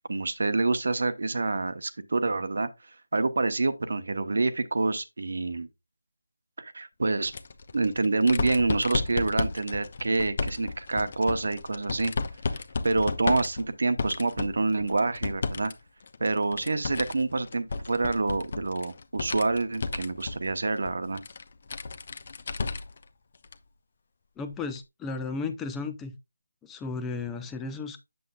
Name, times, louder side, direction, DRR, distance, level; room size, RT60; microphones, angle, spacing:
voice 1, 0.1-2.7 3.1-5.7 6.6-7.3 7.7-12.1 12.5-15.7 16.2-21.2, right 3 dB, 55° right, 0.9 m, -27 dB
sound 1, 7.2-15.7 16.0-23.0 23.4-23.5 24.8-24.9, left 3 dB, 40° left, 0.8 m, -33 dB
voice 2, 24.4-26.1 26.6-28.0, left 4 dB, 10° left, 0.5 m, -34 dB
7.9 x 7.6 x 2.3 m
figure-of-eight pair, 160°, 0 cm